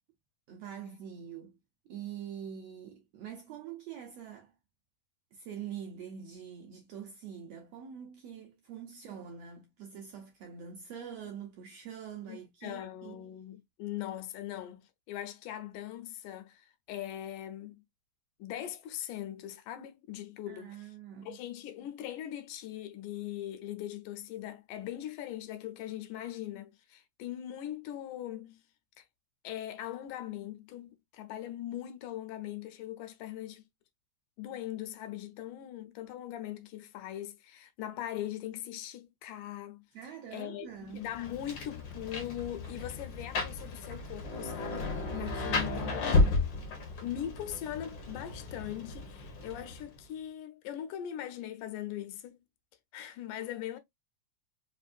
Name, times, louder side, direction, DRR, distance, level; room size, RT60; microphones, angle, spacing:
voice 1, 0.5-1.6 1.8-4.5 5.3-13.2 20.5-21.4 39.9-41.1, right 8 dB, 75° right, 1.5 m, -44 dB
voice 2, 12.3-17.8 18.4-20.9 21.2-28.6 29.0-29.1 29.4-33.6 34.4-39.8 40.3-40.7 40.9-46.3 47.0-52.4 52.9-53.8, left 12 dB, 80° left, 2.3 m, -40 dB
Rain, 40.9-50.0, left 3 dB, 65° left, 1.1 m, -33 dB
5.2 x 2.5 x 2.4 m
omnidirectional pair, 3.6 m